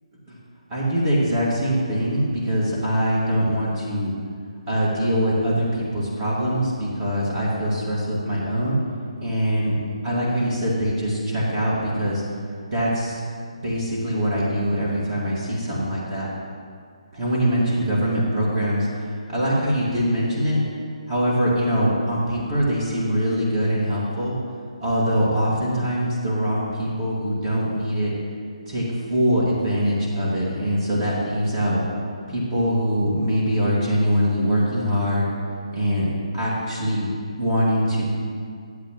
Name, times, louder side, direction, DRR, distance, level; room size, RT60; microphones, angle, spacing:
voice 1, 0.7-4.1 4.7-8.8 9.2-9.8 10.0-12.2 12.7-13.2 13.6-16.3 17.1-20.6 21.1-24.4 24.8-28.1 28.7-28.8 29.1-31.8 32.3-35.3 35.7-36.1 36.3-37.1 37.4-38.1, equal, 25° right, -7 dB, 2.2 m, -23 dB
10.0 x 8.1 x 3.1 m, 2.2 s
figure-of-eight pair, 145°, 4 cm